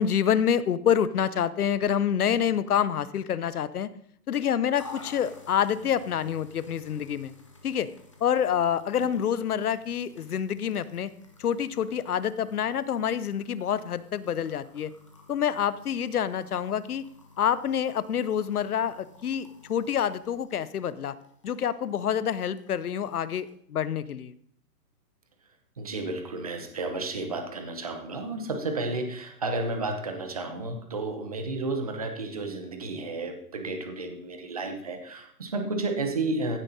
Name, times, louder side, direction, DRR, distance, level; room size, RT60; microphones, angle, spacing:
voice 1, 0.0-3.9 4.3-7.3 7.6-7.9 8.2-11.1 11.4-14.9 15.3-17.0 17.4-21.2 21.4-24.3, left 8 dB, 65° left, 16 dB, 0.8 m, -27 dB
sound 1, 4.7-23.5, left 3 dB, 20° left, 0.8 m, -52 dB
voice 2, 25.8-36.6, right 2 dB, 25° right, 5 dB, 0.9 m, -32 dB
15.5 x 7.3 x 4.1 m, 0.65 s
hypercardioid pair, 180°, 48 cm